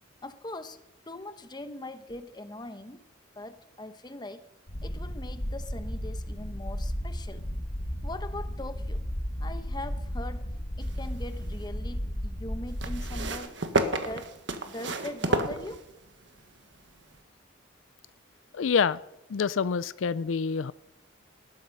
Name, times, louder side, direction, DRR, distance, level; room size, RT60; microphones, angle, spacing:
voice 1, 0.2-3.0 3.3-4.5 4.8-7.5 8.0-9.0 9.4-10.5 10.7-13.6 13.9-14.4 14.6-15.9, left 1 dB, 20° left, 1.0 m, -41 dB
sound 1, 4.7-13.3, equal, 65° left, 3.7 m, -34 dB
sound 2, 10.8-11.7 12.8-16.2 17.1-17.2, right 2 dB, 65° right, 1.5 m, -31 dB
voice 2, 18.5-19.0 19.3-20.7, left 6 dB, 85° left, 0.4 m, -26 dB
18.5 x 13.0 x 5.5 m
head